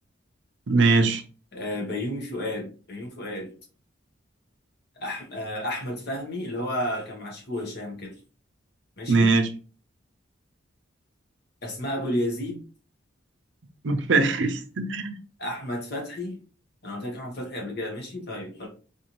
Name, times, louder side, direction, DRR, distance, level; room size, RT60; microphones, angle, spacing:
voice 1, 0.7-1.2 9.1-9.5 13.8-15.2, right 3 dB, 65° right, 0.6 m, -21 dB
voice 2, 1.5-3.5 5.0-8.2 9.0-9.3 11.6-12.6 15.4-16.4 16.8-18.7, left 1 dB, 55° left, 1.1 m, -32 dB
4.1 x 2.7 x 3.0 m
head